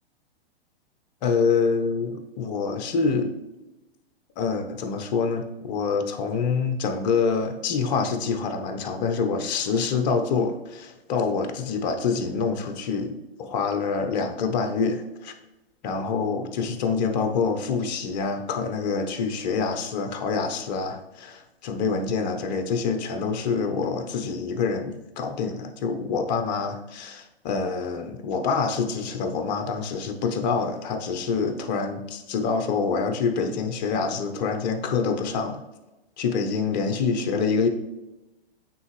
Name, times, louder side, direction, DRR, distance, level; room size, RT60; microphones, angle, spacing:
voice 1, 1.2-3.3 4.4-15.3 15.8-35.6 36.2-37.7, left 5 dB, 40° left, 7 dB, 0.8 m, -26 dB
8.7 x 3.4 x 3.2 m, 1.0 s
hypercardioid pair, 115°, 32 cm